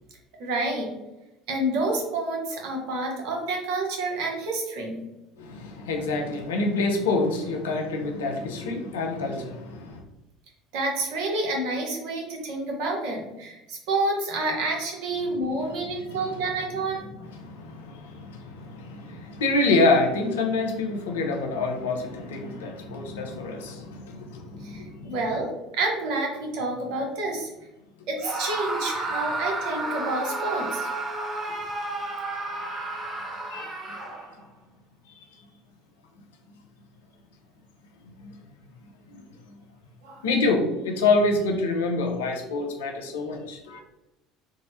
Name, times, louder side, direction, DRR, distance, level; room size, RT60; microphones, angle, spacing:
voice 1, 0.4-0.9 1.5-5.0 10.7-17.0 24.6-25.5 25.7-27.5 28.1-30.9 40.0-40.2, right 2 dB, 65° right, 0.8 m, -29 dB
voice 2, 5.4-10.0 15.9-16.2 17.4-25.2 33.5-33.8 35.2-35.3 38.2-38.3 39.1-39.2 40.2-43.8, left 3 dB, 80° left, 0.5 m, -27 dB
Screaming, 28.2-34.5, right 2 dB, 20° right, 0.7 m, -32 dB
3.6 x 2.0 x 2.6 m
hypercardioid pair, 70°, 0 cm